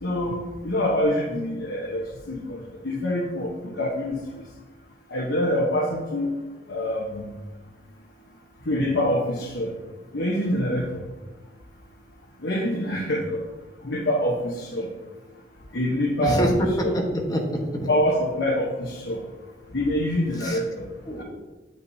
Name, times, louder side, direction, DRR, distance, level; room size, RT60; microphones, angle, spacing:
voice 1, 0.0-4.2 5.1-6.3 6.7-7.2 8.6-9.8 10.1-11.0 12.4-13.4 13.8-14.9 15.7-16.5 16.8-16.9 17.9-19.2 19.7-20.9 21.2-21.3, left 1 dB, 75° left, -2 dB, 1.1 m, -25 dB
voice 2, 16.2-17.9 20.4-20.6 21.0-21.2, equal, 20° left, 0 dB, 1.3 m, -25 dB
8.8 x 8.4 x 2.8 m, 1.2 s
head